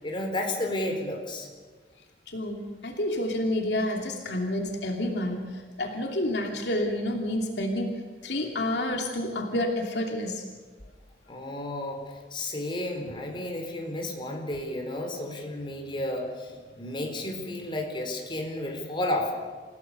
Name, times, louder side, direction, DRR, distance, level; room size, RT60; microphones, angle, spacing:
voice 1, 0.0-1.5 11.3-12.0 12.3-19.3, left 1 dB, 30° left, 2 dB, 4.3 m, -32 dB
voice 2, 2.3-10.4, left 1 dB, 70° left, 1 dB, 2.8 m, -29 dB
29.0 x 17.0 x 6.9 m, 1.4 s
head